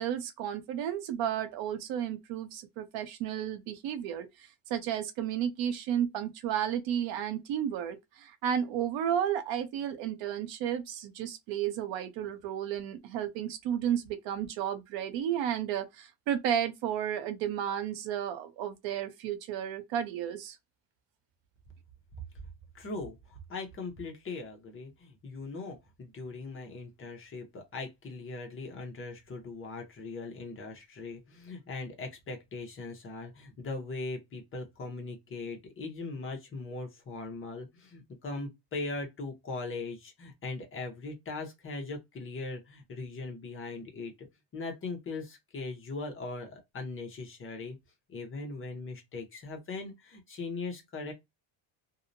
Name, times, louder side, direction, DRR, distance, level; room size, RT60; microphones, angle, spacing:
voice 1, 0.0-20.6, right 9 dB, 65° right, 0.7 m, -33 dB
voice 2, 22.7-44.3 44.5-47.8 48.1-51.1, left 3 dB, 30° left, 0.7 m, -40 dB
2.7 x 2.0 x 2.5 m
cardioid pair, 145°, 47 cm